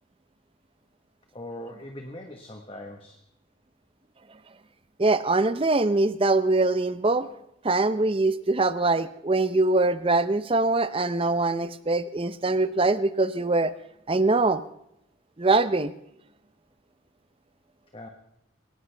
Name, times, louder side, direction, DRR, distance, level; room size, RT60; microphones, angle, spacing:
voice 1, 1.3-3.2 17.9-18.1, left 1 dB, 30° left, 3 dB, 1.3 m, -40 dB
voice 2, 5.0-7.3 7.6-13.7 14.1-14.6 15.4-15.9, right 2 dB, 30° right, 14 dB, 0.7 m, -23 dB
22.0 x 18.5 x 3.4 m, 0.78 s
head